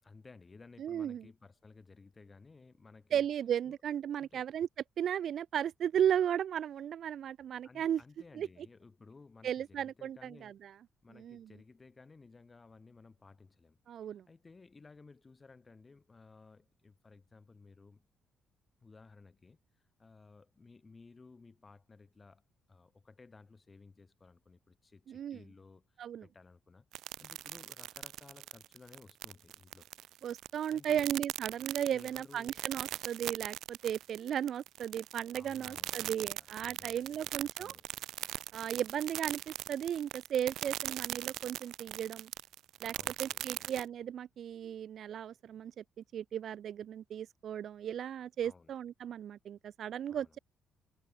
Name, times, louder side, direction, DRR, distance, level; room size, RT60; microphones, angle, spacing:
voice 1, 0.0-3.3 3.6-3.8 4.2-4.5 7.6-10.6 11.0-18.0 18.8-29.9 30.7-31.1 31.9-32.6 35.3-38.1 43.0-43.7 48.4-48.7 50.1-50.4, left 4 dB, 20° left, 4.4 m, -57 dB
voice 2, 0.8-1.2 3.1-4.7 5.0-8.0 8.4-8.5 9.4-10.7 11.2-11.5 13.9-14.2 25.1-25.4 26.0-26.2 30.2-37.7 38.5-42.3 42.8-42.9 43.2-45.8 46.1-50.4, right 9 dB, 55° right, 0.7 m, -35 dB
sound 1, 26.9-43.8, right 13 dB, 80° right, 1.0 m, -40 dB
cardioid pair, 135°, 0 cm